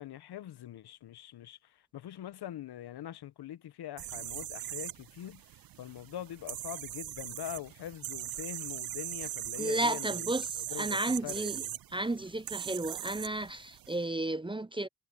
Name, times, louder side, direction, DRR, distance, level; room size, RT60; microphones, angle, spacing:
voice 1, 0.0-11.8, left 11 dB, 70° left, 1.4 m, -43 dB
sound 1, 4.0-14.0, right 13 dB, 60° right, 0.7 m, -40 dB
voice 2, 9.6-11.6 11.9-14.9, right 1 dB, 10° right, 0.8 m, -33 dB
hypercardioid pair, 40°, 40 cm